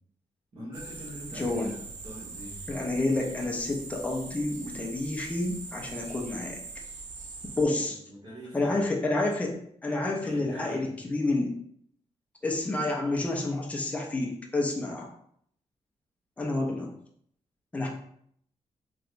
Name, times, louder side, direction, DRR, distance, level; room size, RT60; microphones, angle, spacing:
voice 1, 0.5-2.6 7.7-8.8 10.2-10.9, equal, 50° right, -8 dB, 1.2 m, -44 dB
sound 1, 0.7-7.6, right 4 dB, 80° right, 0.6 m, -42 dB
voice 2, 1.3-1.7 2.7-6.6 7.6-8.0 8.5-11.5 12.4-15.1 16.4-16.9 17.7-17.9, left 2 dB, 10° left, -1 dB, 0.4 m, -29 dB
3.2 x 2.8 x 2.5 m, 0.68 s
wide cardioid pair, 170°, 12 cm